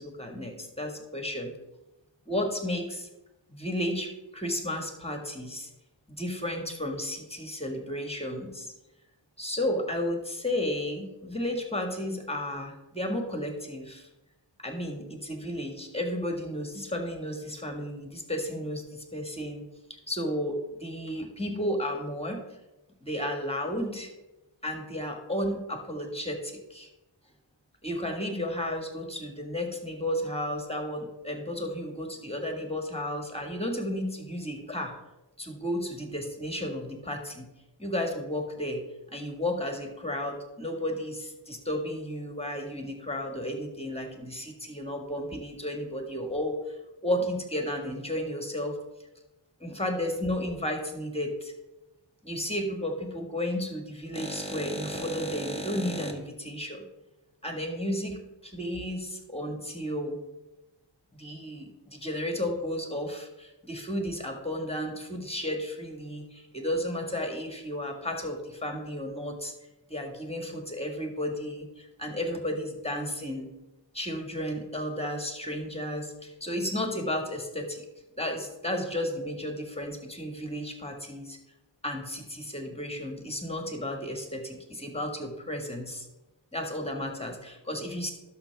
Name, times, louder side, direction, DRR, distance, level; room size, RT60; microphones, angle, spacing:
voice 1, 0.0-1.5 2.3-3.1 3.5-5.7 6.1-8.7 9.4-14.1 14.6-19.6 20.1-22.4 23.0-24.1 24.6-26.9 27.8-34.9 35.4-37.5 37.8-38.8 39.1-46.7 47.0-48.8 49.6-51.5 52.2-56.8 57.4-60.2 61.1-69.5 69.9-73.5 73.9-77.8 78.2-81.4 81.8-86.1 86.5-88.1, left 1 dB, 15° left, 3 dB, 1.7 m, -33 dB
11.5 x 6.8 x 3.4 m, 0.98 s
wide cardioid pair, 45°, 46 cm